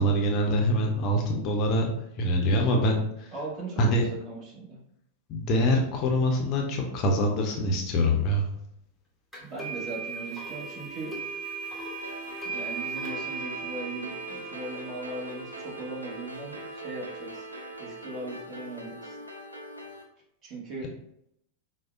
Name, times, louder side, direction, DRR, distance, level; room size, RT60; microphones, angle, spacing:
voice 1, 0.0-3.3 3.8-4.0 5.3-8.4, equal, 35° left, 1 dB, 0.5 m, -24 dB
voice 2, 3.3-3.8 4.1-4.8 9.4-11.2 12.4-17.4 17.8-19.2 20.4-20.9, right 2 dB, 35° right, -4 dB, 1.1 m, -39 dB
sound 1, 9.3-18.2, right 4 dB, 5° right, 0.9 m, -38 dB
sound 2, 12.0-20.0, right 1 dB, 85° right, 0.5 m, -42 dB
4.6 x 2.0 x 2.4 m, 0.76 s
figure-of-eight pair, 90°, 0 cm